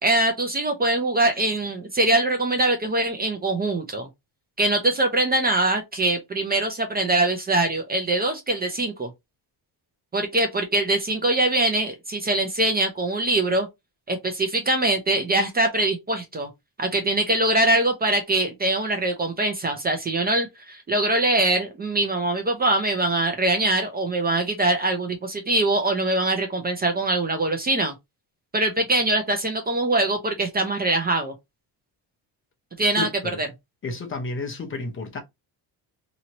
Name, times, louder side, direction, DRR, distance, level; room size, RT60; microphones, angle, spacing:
voice 1, 0.0-4.1 4.6-9.1 10.1-13.7 14.1-16.5 16.8-27.9 28.5-31.3 32.8-33.1 33.4-33.5, right 2 dB, 25° right, 0.6 m, -23 dB
voice 2, 32.9-33.4 33.8-35.2, left 3 dB, 30° left, 0.8 m, -31 dB
2.9 x 2.8 x 2.8 m
cardioid pair, 150°, 41 cm